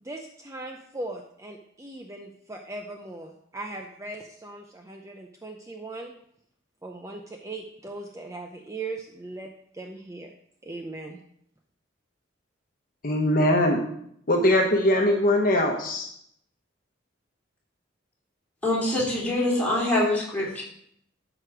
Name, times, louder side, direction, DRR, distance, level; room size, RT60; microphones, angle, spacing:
voice 1, 0.0-6.1 6.8-9.5 9.7-10.3 10.6-11.2, right 2 dB, 15° right, 2 dB, 0.6 m, -39 dB
voice 2, 13.0-13.8 14.3-16.1, left 1 dB, 45° left, 2 dB, 1.1 m, -21 dB
voice 3, 18.6-20.6, left 1 dB, 10° left, -6 dB, 3.2 m, -24 dB
12.0 x 5.0 x 4.9 m, 0.70 s
head